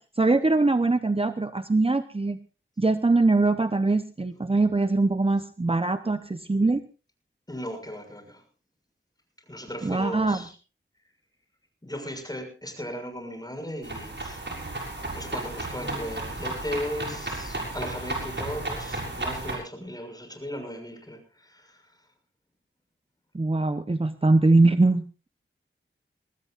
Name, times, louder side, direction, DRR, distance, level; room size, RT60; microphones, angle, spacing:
voice 1, 0.0-2.4 2.8-6.8 9.8-10.4 23.3-25.3, right 3 dB, 25° right, 10 dB, 0.9 m, -22 dB
voice 2, 7.5-8.4 9.5-10.5 11.8-14.4 15.1-21.8, equal, 20° left, 5 dB, 6.6 m, -37 dB
sound 1, 13.8-19.5, right 2 dB, 60° right, 6.8 m, -33 dB
23.0 x 19.0 x 2.5 m, 0.34 s
wide cardioid pair, 75°, 21 cm